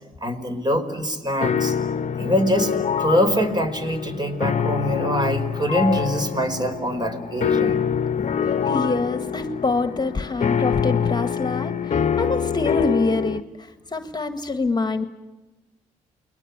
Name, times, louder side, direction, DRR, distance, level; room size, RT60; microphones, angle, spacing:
voice 1, 0.2-1.8 2.2-2.7 3.0-7.8, equal, 25° right, 7 dB, 4.9 m, -23 dB
sound 1, 1.4-13.4, left 7 dB, 50° left, 1.0 m, -25 dB
voice 2, 8.6-13.4 13.9-15.1, left 3 dB, 25° left, 9 dB, 1.7 m, -25 dB
29.5 x 21.5 x 8.3 m, 1.2 s
hypercardioid pair, 45°, 16 cm